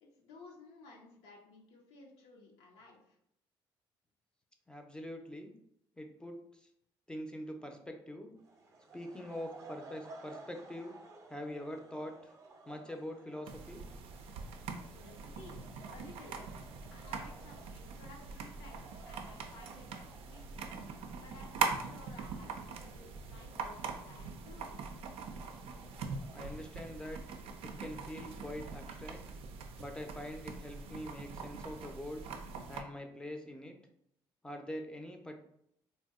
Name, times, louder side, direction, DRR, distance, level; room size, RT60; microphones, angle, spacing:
voice 1, 0.0-3.2 14.9-16.5 16.9-20.6 21.2-24.8, left 3 dB, 85° left, -1 dB, 0.6 m, -56 dB
voice 2, 4.7-5.5 6.0-6.7 7.1-8.3 8.9-10.9 11.3-12.3 12.7-13.8 26.3-27.2 27.6-29.2 29.8-32.2 32.7-33.8 34.4-35.4, left 1 dB, 10° left, 4 dB, 0.5 m, -44 dB
sound 1, 8.4-27.7, right 3 dB, 30° right, 0.6 m, -57 dB
sound 2, 13.5-32.8, right 5 dB, 70° right, 0.4 m, -42 dB
2.6 x 2.1 x 3.5 m, 0.74 s
supercardioid pair, 80°, 10 cm